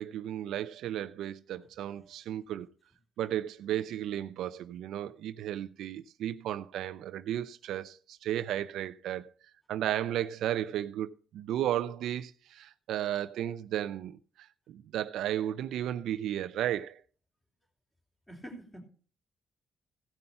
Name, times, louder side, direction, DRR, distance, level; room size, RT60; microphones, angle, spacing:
voice 1, 0.0-2.7 3.2-9.3 9.7-17.0, right 11 dB, 80° right, 0.5 m, -34 dB
voice 2, 18.3-18.8, right 1 dB, 10° left, 3.8 m, -46 dB
16.0 x 5.4 x 5.7 m
cardioid pair, 90°, 0 cm